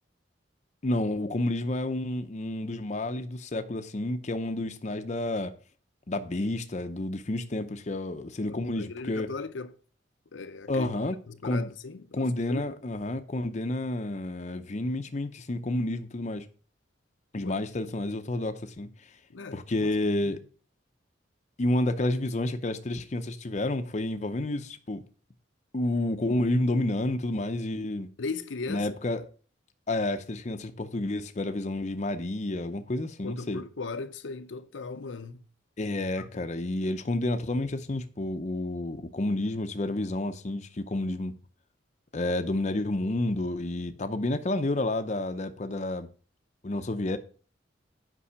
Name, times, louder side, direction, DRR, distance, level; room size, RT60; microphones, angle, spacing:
voice 1, 0.8-5.5 6.1-9.3 10.7-11.2 11.4-11.7 12.1-16.5 17.3-18.9 19.5-20.4 21.6-25.0 25.7-28.1 28.7-29.2 29.9-33.6 35.8-41.3 42.1-46.1 46.6-47.2, left 1 dB, 35° left, 0.6 m, -30 dB
voice 2, 8.5-9.7 10.3-10.9 11.3-12.8 17.4-17.5 19.3-19.9 20.2-20.4 28.2-28.9 33.2-35.4 36.2-36.3, left 4 dB, 75° left, 0.7 m, -38 dB
8.5 x 5.4 x 5.5 m
head